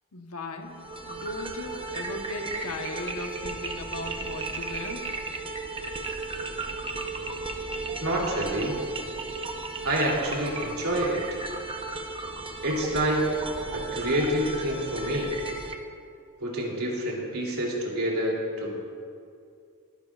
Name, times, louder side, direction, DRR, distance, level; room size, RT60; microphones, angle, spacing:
voice 1, 0.1-5.1, left 2 dB, 80° left, 4 dB, 1.1 m, -37 dB
sound 1, 0.7-15.7, right 3 dB, 25° right, 0.8 m, -35 dB
voice 2, 8.0-8.7 9.8-11.2 12.6-13.2 13.7-15.3 16.4-18.7, right 1 dB, 75° right, -3 dB, 3.0 m, -27 dB
22.0 x 10.5 x 2.5 m, 2.3 s
head